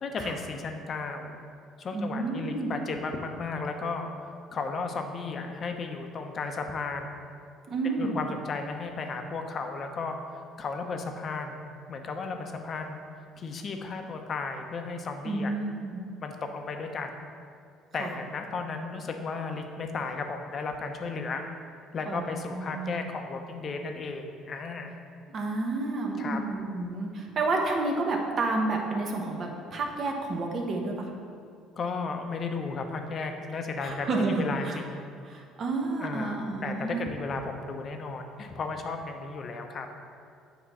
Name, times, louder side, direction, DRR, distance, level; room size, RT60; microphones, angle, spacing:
voice 1, 0.0-1.4 1.8-4.1 4.5-7.2 8.0-10.2 10.6-11.6 11.9-13.0 13.4-15.5 16.2-17.1 17.9-21.5 21.9-25.0 26.2-26.4 31.8-35.0 36.0-39.9, left 4 dB, 40° left, 5 dB, 0.7 m, -34 dB
voice 2, 1.9-2.7 7.7-8.2 15.2-16.0 18.0-18.2 22.1-23.0 25.3-31.1 33.8-34.8 35.2-37.0, right 3 dB, 45° right, 1 dB, 1.1 m, -30 dB
8.6 x 3.0 x 5.5 m, 2.3 s
cardioid pair, 110°, 0 cm